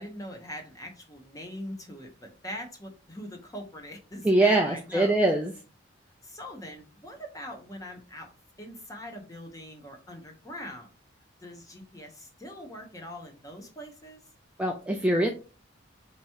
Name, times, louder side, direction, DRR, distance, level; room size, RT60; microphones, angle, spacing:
voice 1, 0.0-5.2 6.2-8.3 8.6-10.9 11.4-14.2, equal, 15° left, 3 dB, 0.9 m, -42 dB
voice 2, 4.2-5.5 14.6-15.3, right 2 dB, 5° right, 0 dB, 0.3 m, -23 dB
4.5 x 3.0 x 2.8 m, 0.34 s
head